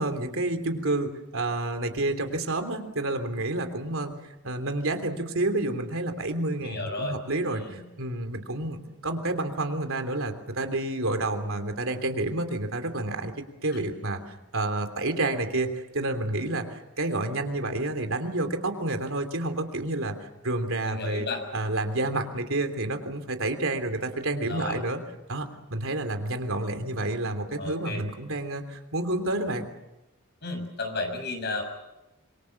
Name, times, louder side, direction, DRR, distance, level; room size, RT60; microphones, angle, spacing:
voice 1, 0.0-13.3 13.6-21.3 21.5-25.0 25.3-29.7, right 2 dB, 70° right, 6 dB, 3.1 m, -29 dB
voice 2, 6.6-7.1 7.5-7.7 20.8-21.4 24.5-24.8 27.6-28.0 30.4-31.6, left 3 dB, 50° left, 5 dB, 6.7 m, -33 dB
26.5 x 24.0 x 7.3 m, 0.95 s
head